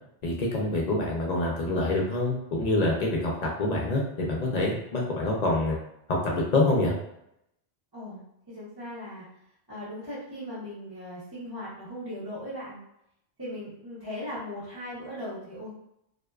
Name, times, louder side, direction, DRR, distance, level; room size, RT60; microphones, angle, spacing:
voice 1, 0.2-5.8 6.1-6.9, left 2 dB, 55° left, -2 dB, 0.5 m, -26 dB
voice 2, 8.5-9.3 9.7-12.8 13.4-15.8, left 1 dB, 25° right, -12 dB, 0.7 m, -38 dB
2.6 x 2.2 x 2.2 m, 0.79 s
omnidirectional pair, 1.1 m